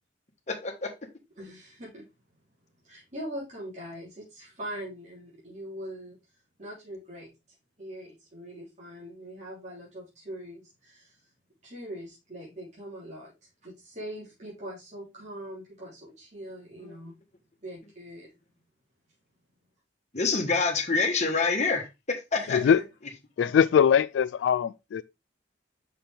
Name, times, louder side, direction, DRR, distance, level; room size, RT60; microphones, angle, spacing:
voice 1, 0.5-0.9 16.8-17.0 20.1-22.6, left 4 dB, 40° left, 1.3 m, -27 dB
voice 2, 1.4-2.1 2.8-6.2 6.6-7.3 7.8-11.1 11.6-13.3 13.6-17.1 17.6-18.3 22.3-22.8, equal, 40° right, 3.3 m, -42 dB
voice 3, 22.5-22.8 23.4-25.0, left 7 dB, 75° left, 0.3 m, -22 dB
6.0 x 5.9 x 3.3 m
head